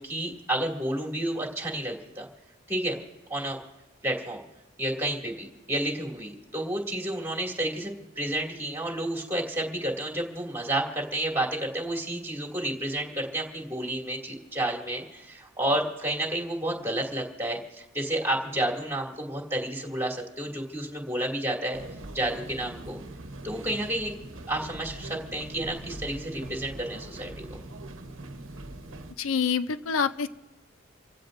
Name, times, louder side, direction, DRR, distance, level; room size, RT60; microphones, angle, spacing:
voice 1, 0.0-2.3 2.7-3.0 3.3-3.6 4.0-4.4 4.8-21.8 22.1-23.0 23.4-24.1 24.5-27.4, right 1 dB, 10° right, -1 dB, 2.4 m, -30 dB
sound 1, 21.7-29.1, right 1 dB, 75° right, 1.0 m, -42 dB
voice 2, 29.2-30.3, left 6 dB, 85° left, 12 dB, 0.5 m, -26 dB
28.0 x 15.5 x 2.6 m, 1.1 s
head